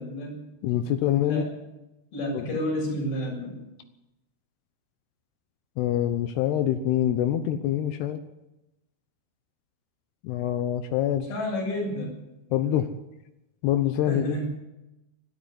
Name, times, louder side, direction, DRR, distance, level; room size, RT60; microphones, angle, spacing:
voice 1, 0.0-0.8 1.2-1.5 2.1-3.6 11.3-12.2 14.1-14.5, equal, 65° left, -1 dB, 9.4 m, -31 dB
voice 2, 0.6-1.4 2.3-2.5 5.8-8.2 10.2-11.3 12.5-12.9 13.6-14.5, left 11 dB, 85° left, 9 dB, 3.0 m, -25 dB
22.0 x 13.0 x 9.6 m, 0.96 s
omnidirectional pair, 4.6 m